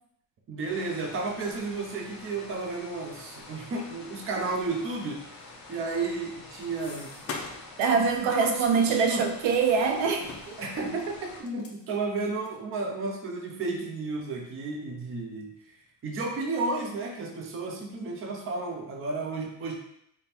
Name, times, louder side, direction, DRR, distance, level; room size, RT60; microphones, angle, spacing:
voice 1, 0.5-7.3 8.3-9.3 10.6-15.5 16.0-19.7, right 3 dB, 30° right, 1 dB, 0.6 m, -33 dB
sound 1, 0.7-11.4, left 2 dB, 50° left, 1.0 m, -47 dB
sound 2, 5.8-7.8 8.1-8.3 8.9-9.8 10.1-12.6 13.2-13.3 13.5-13.6 14.3-14.5 15.0-15.7 16.0-16.7, left 4 dB, 35° left, 0.6 m, -44 dB
voice 2, 7.8-10.6, right 5 dB, 75° right, 4 dB, 0.8 m, -24 dB
5.2 x 2.2 x 4.3 m, 0.75 s
cardioid pair, 175°, 45 cm